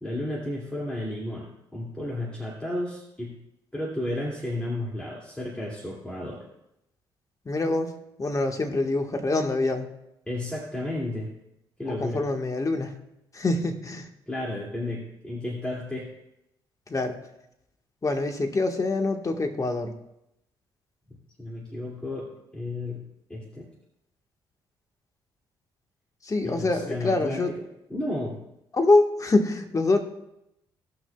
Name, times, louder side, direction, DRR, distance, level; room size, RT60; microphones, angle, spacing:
voice 1, 0.0-3.4 3.7-6.4 10.3-11.3 11.8-12.2 14.3-16.1 21.4-23.7 26.4-27.4 27.9-28.4, left 1 dB, 10° left, -4 dB, 2.4 m, -33 dB
voice 2, 7.4-7.9 8.2-9.9 11.8-12.9 13.3-14.1 16.9-17.2 18.0-19.9 26.2-27.5 28.7-30.0, left 2 dB, 30° left, 5 dB, 1.5 m, -25 dB
17.5 x 6.2 x 2.3 m, 0.84 s
supercardioid pair, 55°, 10 cm